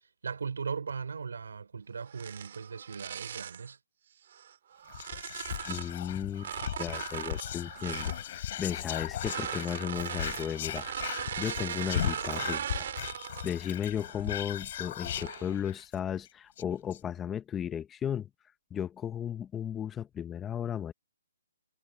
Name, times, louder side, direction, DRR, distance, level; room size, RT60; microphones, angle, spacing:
voice 1, 0.2-3.8, right 5 dB, 75° right, 3.2 m, -38 dB
sound 1, 2.1-3.7 4.3-5.9 6.4-8.2 9.1-13.6 14.0-14.3 15.0-15.5, right 9 dB, 50° right, 3.0 m, -39 dB
Whispering, 4.9-15.9 16.3-16.4 16.6-17.0, left 11 dB, 40° left, 1.0 m, -37 dB
voice 2, 5.7-6.5 6.8-11.1 11.4-12.9 13.4-18.3 18.7-20.9, left 9 dB, 10° left, 0.6 m, -35 dB
hypercardioid pair, 160°, 0 cm